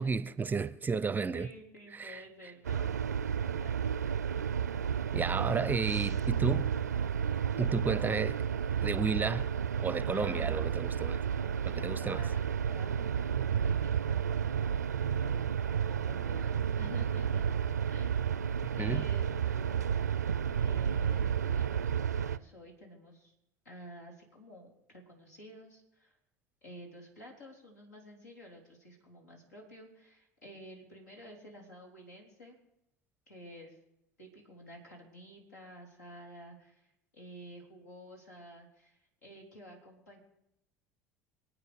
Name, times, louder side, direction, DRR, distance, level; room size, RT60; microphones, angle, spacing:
voice 1, 0.0-1.5 1.9-2.2 5.1-6.7 7.6-8.4 8.8-9.5 9.8-11.2 11.7-12.2 18.8-19.1, right 4 dB, 20° right, 0.6 m, -32 dB
voice 2, 1.3-3.9 10.1-10.6 11.4-12.4 12.7-17.5 17.9-18.3 18.7-20.0 20.5-23.3 23.6-26.2 26.6-32.6 33.3-33.8 34.2-40.2, equal, 80° left, 4.0 m, -51 dB
sound 1, 2.6-22.4, right 8 dB, 85° right, 0.4 m, -31 dB
26.5 x 8.9 x 5.3 m
figure-of-eight pair, 70°, 9 cm